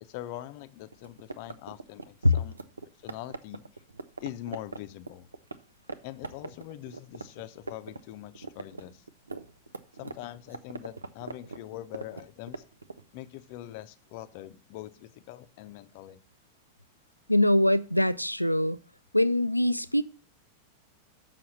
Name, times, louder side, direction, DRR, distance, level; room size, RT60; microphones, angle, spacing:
voice 1, 0.0-2.5 3.0-3.6 4.2-5.3 6.0-9.0 10.0-12.6 13.1-16.2, left 14 dB, 45° left, 0.6 m, -43 dB
sound 1, 0.9-5.6 5.9-6.0 6.2-8.0 8.2-13.0, right 3 dB, 75° right, 0.5 m, -40 dB
voice 2, 17.3-18.8 19.1-20.0, left 1 dB, 90° left, 0.3 m, -23 dB
6.9 x 5.7 x 6.4 m
figure-of-eight pair, 90°, 0 cm